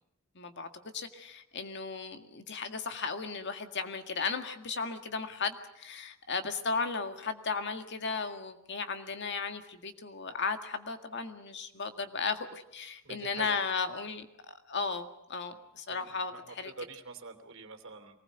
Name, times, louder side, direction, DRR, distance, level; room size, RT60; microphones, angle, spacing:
voice 1, 0.4-0.7 0.9-16.7, left 4 dB, 55° left, 7 dB, 1.9 m, -35 dB
voice 2, 13.0-13.6 15.9-18.2, right 3 dB, 65° right, 7 dB, 2.9 m, -46 dB
24.0 x 19.5 x 7.9 m, 0.82 s
head